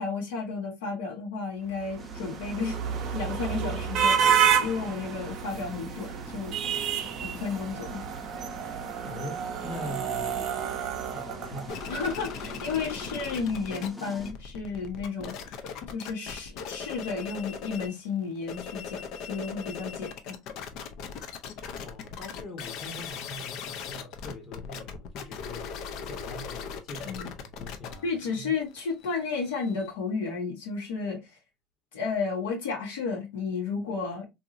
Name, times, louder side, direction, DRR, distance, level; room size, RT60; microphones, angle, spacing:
voice 1, 0.0-2.8 3.1-4.3 4.6-6.8 7.2-8.0 11.9-15.5 15.9-20.4 27.1-27.3 28.0-31.2 31.9-34.3, left 5 dB, 85° left, 1.1 m, -32 dB
sound 1, 1.8-12.2, right 8 dB, 50° right, 0.5 m, -29 dB
sound 2, 2.0-14.3, equal, 10° left, 0.7 m, -46 dB
voice 2, 9.0-11.8 21.8-28.6, left 2 dB, 40° left, 1.0 m, -43 dB
sound 3, 11.7-13.9 14.1-18.0 18.4-29.9, left 6 dB, 60° left, 0.5 m, -39 dB
2.9 x 2.6 x 2.4 m
hypercardioid pair, 90°, 0 cm